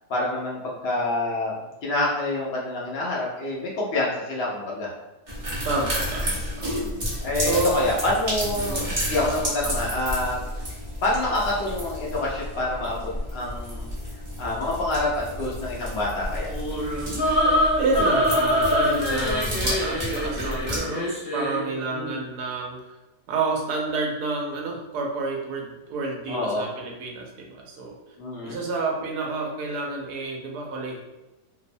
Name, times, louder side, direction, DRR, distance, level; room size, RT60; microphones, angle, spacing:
voice 1, 0.1-1.5 1.8-4.9 6.7-10.4 11.0-13.9 14.4-16.5 21.9-22.2 26.3-26.7 28.2-28.6, left 2 dB, 80° left, -4 dB, 0.5 m, -27 dB
sound 1, 5.3-20.8, equal, 45° right, 0.4 m, -31 dB
voice 2, 5.6-6.9 7.4-7.9 8.6-8.9 17.8-22.9 23.3-28.0 28.4-31.0, right 3 dB, 75° right, 0 dB, 1.1 m, -29 dB
sound 2, 16.4-21.7, equal, 45° left, 0.8 m, -24 dB
2.8 x 2.0 x 2.6 m, 1.0 s
omnidirectional pair, 1.8 m